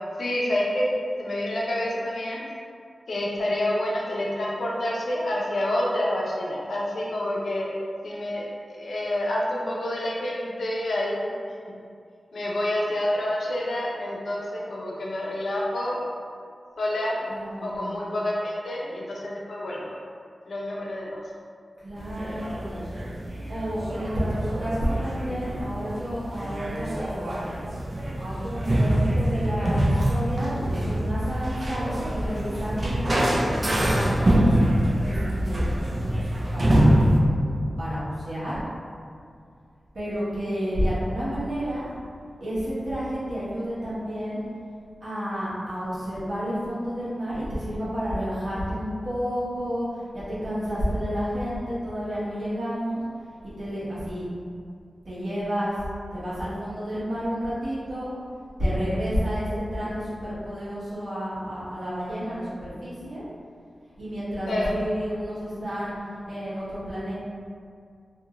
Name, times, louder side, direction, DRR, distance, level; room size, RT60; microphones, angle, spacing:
voice 1, 0.2-0.8 1.2-2.4 3.1-7.7 8.0-8.5 8.7-11.3 11.7-11.8 12.3-16.0 16.8-17.2 17.6-19.9 20.5-21.2 64.5-64.7, left 1 dB, 80° left, -4 dB, 0.5 m, -28 dB
voice 2, 17.3-18.0 21.8-22.9 23.5-27.4 28.2-34.4 35.0-35.7 36.0-38.6 39.9-41.9 42.4-44.4 45.0-53.0 53.6-54.3 55.0-55.9 56.1-58.1 58.6-63.2 64.0-65.9 66.3-67.1, equal, 80° right, -11 dB, 1.2 m, -30 dB
sound 1, 22.0-37.2, right 1 dB, 45° right, 0.4 m, -25 dB
2.7 x 2.4 x 2.9 m, 2.3 s
wide cardioid pair, 80°, 0 cm